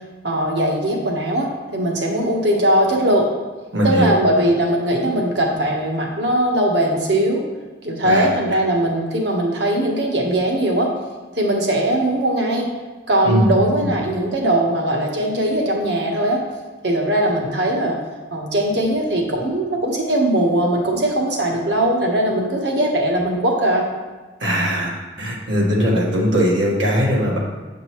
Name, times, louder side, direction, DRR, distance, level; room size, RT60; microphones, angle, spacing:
voice 1, 0.2-3.2 3.8-7.4 7.8-10.9 11.3-12.7 13.1-16.4 16.8-18.0 18.3-23.8, right 1 dB, 65° right, 0 dB, 1.2 m, -20 dB
voice 2, 3.7-4.1 8.0-8.3 13.2-13.5 13.8-13.9 24.4-24.9 25.2-27.4, equal, 90° right, -3 dB, 1.5 m, -19 dB
8.1 x 5.3 x 3.1 m, 1.3 s
head